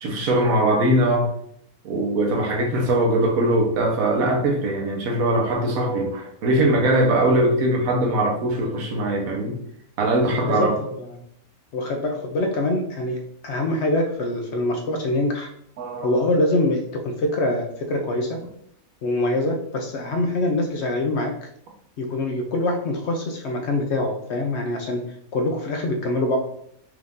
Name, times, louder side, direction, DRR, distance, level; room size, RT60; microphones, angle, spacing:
voice 1, 0.0-1.3 1.8-9.6 10.0-10.7 15.8-16.2, right 1 dB, 65° right, 1 dB, 1.3 m, -21 dB
voice 2, 10.4-11.2 11.7-13.2 13.4-15.5 16.0-18.4 19.0-21.3 22.0-25.0 25.3-26.4, left 2 dB, 65° left, 3 dB, 0.7 m, -24 dB
4.6 x 2.5 x 3.6 m, 0.70 s
omnidirectional pair, 1.6 m